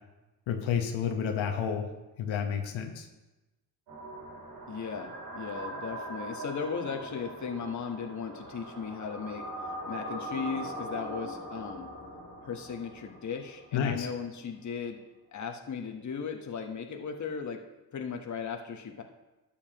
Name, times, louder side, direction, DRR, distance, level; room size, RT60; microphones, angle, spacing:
voice 1, 0.5-1.9 2.2-3.1 13.7-14.1, left 7 dB, 75° left, 3 dB, 1.2 m, -30 dB
sound 1, 3.9-14.0, right 1 dB, 75° right, 3.2 m, -41 dB
voice 2, 4.7-9.5 9.9-11.9 12.4-15.0 15.3-17.6 17.9-19.0, left 6 dB, 35° left, 4 dB, 1.1 m, -37 dB
12.0 x 7.1 x 2.9 m, 1.1 s
cardioid pair, 75°, 47 cm